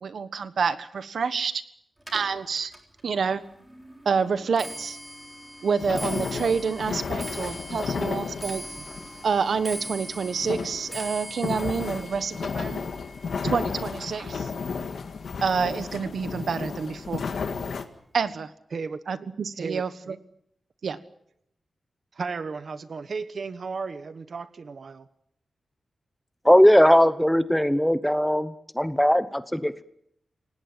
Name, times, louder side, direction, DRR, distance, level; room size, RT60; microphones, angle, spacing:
voice 1, 0.0-1.6 2.1-2.7 3.0-3.4 4.0-5.0 5.6-8.8 9.2-12.8 13.4-14.5 15.4-17.3 18.1-18.5 19.1-20.1 20.8-21.0, right 5 dB, 65° right, 12 dB, 1.4 m, -28 dB
Clock, 2.0-15.3 15.7-16.1 16.9-17.0 17.3-17.7 18.0-18.1, equal, 15° right, 3.8 m, -42 dB
sound 1, 5.8-17.8, left 5 dB, 70° left, 2.0 m, -33 dB
voice 2, 18.7-19.0 19.6-20.2 22.1-25.1, right 4 dB, 50° right, 13 dB, 1.0 m, -34 dB
voice 3, 26.4-29.8, equal, 5° left, 13 dB, 1.0 m, -19 dB
28.5 x 18.0 x 7.8 m, 0.72 s
wide cardioid pair, 165°, 0 cm